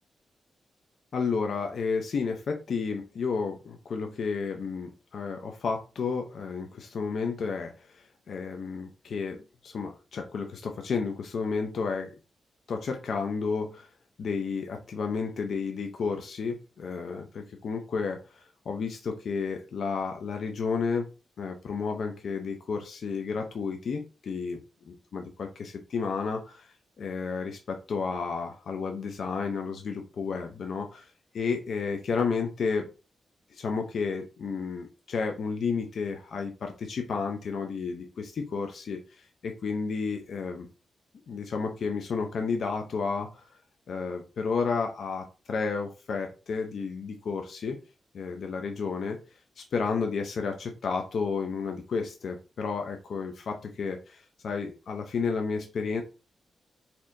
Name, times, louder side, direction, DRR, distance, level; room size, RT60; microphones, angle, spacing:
voice 1, 1.1-12.1 12.7-13.9 14.2-21.1 21.4-24.6 25.1-31.1 31.3-32.9 33.5-40.7 41.3-43.4 43.9-47.8 48.1-49.2 49.6-56.0, left 5 dB, 70° left, 4 dB, 0.6 m, -32 dB
4.3 x 2.8 x 2.6 m, 0.31 s
cardioid pair, 80°, 0 cm